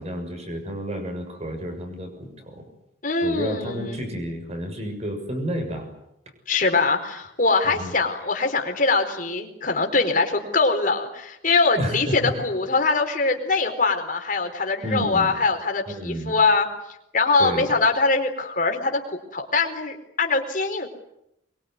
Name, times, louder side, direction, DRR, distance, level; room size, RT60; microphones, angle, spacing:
voice 1, 0.0-2.6 3.2-5.9 7.7-7.9 11.7-12.4 14.8-15.4 15.9-16.3 17.4-17.7, equal, 35° right, 5 dB, 6.8 m, -30 dB
voice 2, 3.0-4.1 6.5-16.7 17.1-20.9, left 3 dB, 45° left, 4 dB, 4.3 m, -23 dB
23.5 x 23.5 x 9.6 m, 0.82 s
head